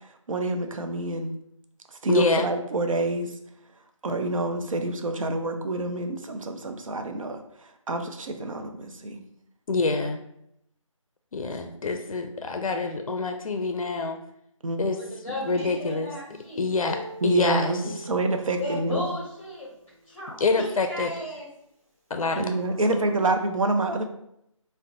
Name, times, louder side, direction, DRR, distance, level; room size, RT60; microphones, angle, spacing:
voice 1, 0.3-1.3 2.0-3.3 4.0-7.4 7.9-8.8 9.0-9.2 14.6-14.8 17.2-19.1 22.4-24.1, right 2 dB, 75° right, 6 dB, 0.5 m, -27 dB
voice 2, 2.1-2.5 9.7-10.2 11.3-14.2 14.8-15.0 15.4-16.1 16.6-17.8 20.4-21.1 22.1-22.5, left 3 dB, 90° left, 5 dB, 0.4 m, -26 dB
voice 3, 14.9-16.7 18.6-19.7 20.1-21.5, left 1 dB, 15° left, -7 dB, 0.8 m, -35 dB
Acoustic guitar, 15.4-20.6 22.1-23.4, equal, 25° right, 0.7 m, -45 dB
2.6 x 2.1 x 3.8 m, 0.77 s
figure-of-eight pair, 165°, 17 cm